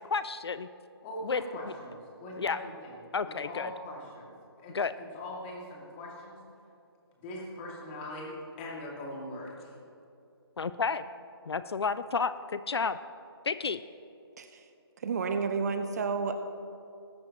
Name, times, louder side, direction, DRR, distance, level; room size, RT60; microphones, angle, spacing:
voice 1, 0.1-0.7 1.2-1.4 2.4-2.6 3.1-3.7 4.7-4.9 10.6-11.0 11.5-13.0 13.4-13.8, left 5 dB, 75° left, 13 dB, 0.5 m, -31 dB
voice 2, 1.0-3.0 3.2-4.3 4.6-6.4 7.2-9.8, left 1 dB, 25° left, -3 dB, 2.4 m, -41 dB
voice 3, 15.0-16.4, right 5 dB, 40° right, 8 dB, 0.7 m, -31 dB
19.5 x 9.3 x 3.0 m, 2.7 s
figure-of-eight pair, 150°, 14 cm